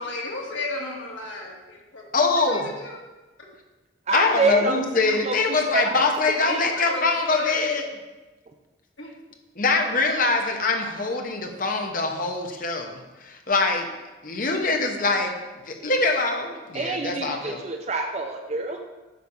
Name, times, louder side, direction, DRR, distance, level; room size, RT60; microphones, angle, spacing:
voice 1, 0.0-2.0 2.3-3.0 6.7-7.7 9.0-9.1, left 2 dB, 80° left, -1 dB, 1.9 m, -34 dB
voice 2, 2.1-2.7 4.1-7.8 9.6-13.9 14.2-15.3 15.7-17.6, left 3 dB, 45° left, 4 dB, 1.0 m, -23 dB
voice 3, 4.1-5.4 5.7-6.1 6.5-6.6 16.7-18.8, right 3 dB, 35° right, 4 dB, 0.5 m, -27 dB
10.0 x 3.5 x 7.0 m, 1.2 s
head